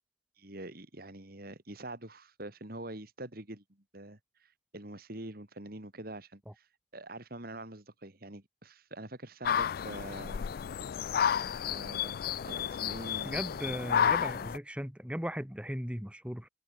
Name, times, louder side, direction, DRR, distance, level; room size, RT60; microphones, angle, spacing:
voice 1, 0.4-3.6 3.9-6.7 6.9-10.5 11.7-12.2 12.4-13.4 13.9-14.1, right 1 dB, 50° right, 2.7 m, -45 dB
sound 1, 9.4-14.6, left 8 dB, 50° left, 0.3 m, -31 dB
voice 2, 13.2-16.5, equal, 5° right, 2.4 m, -37 dB
head